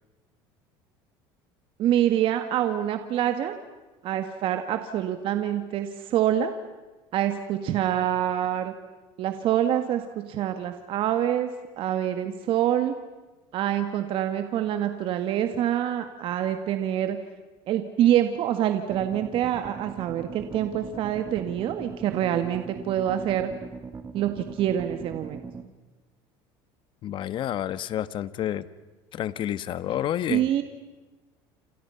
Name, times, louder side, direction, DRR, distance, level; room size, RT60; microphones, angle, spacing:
voice 1, 1.8-3.6 4.0-6.5 7.1-8.7 9.2-11.5 11.8-12.9 13.5-17.2 17.7-23.5 24.1-25.4 30.3-30.6, right 11 dB, 55° right, 8 dB, 1.8 m, -26 dB
sound 1, 18.9-25.7, right 5 dB, 25° right, 1.9 m, -40 dB
voice 2, 27.0-28.7 29.1-30.4, left 11 dB, 50° left, 15 dB, 1.3 m, -29 dB
28.5 x 28.0 x 5.8 m, 1.2 s
supercardioid pair, 110°, 11 cm